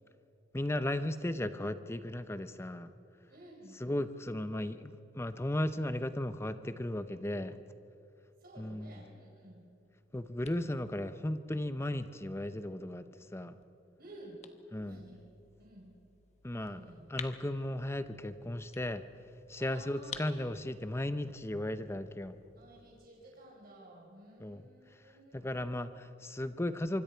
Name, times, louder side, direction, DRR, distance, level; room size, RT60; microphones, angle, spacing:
voice 1, 0.5-2.9 3.7-7.6 8.6-9.0 10.1-13.6 14.7-15.0 16.4-16.8 17.1-19.0 19.5-22.4 24.4-24.6 25.3-27.0, left 1 dB, 15° left, 11 dB, 0.6 m, -36 dB
voice 2, 3.3-3.8 8.4-9.6 14.0-14.4 14.8-15.2 15.6-15.9 16.6-17.0 19.6-20.3 22.5-25.5, right 1 dB, 55° right, -2 dB, 4.4 m, -53 dB
sound 1, 9.6-23.1, left 6 dB, 35° left, 1.0 m, -54 dB
25.0 x 24.5 x 4.5 m, 2.7 s
head